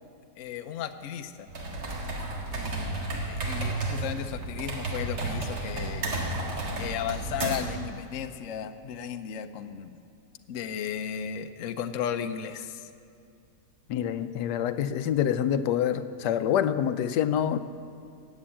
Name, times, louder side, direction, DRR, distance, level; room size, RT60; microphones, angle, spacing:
voice 1, 0.4-1.5 2.5-6.1 6.5-10.0 10.5-12.9, left 8 dB, 60° left, 8 dB, 0.9 m, -35 dB
sound 1, 1.5-7.8, right 2 dB, 75° right, 2.4 m, -32 dB
voice 2, 13.9-17.6, left 9 dB, 80° left, 12 dB, 1.2 m, -26 dB
14.5 x 8.7 x 8.7 m, 2.5 s
omnidirectional pair, 1.8 m